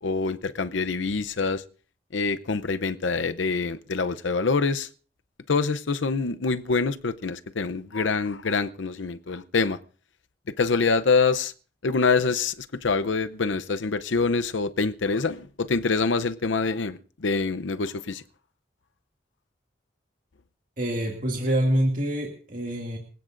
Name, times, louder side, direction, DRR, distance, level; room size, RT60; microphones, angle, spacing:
voice 1, 0.0-1.6 2.1-4.9 5.5-9.8 10.6-11.5 11.8-18.2, left 4 dB, 75° left, 12 dB, 0.7 m, -25 dB
voice 2, 20.8-23.0, right 1 dB, 45° right, 0 dB, 2.3 m, -26 dB
26.0 x 16.5 x 2.6 m, 0.39 s
head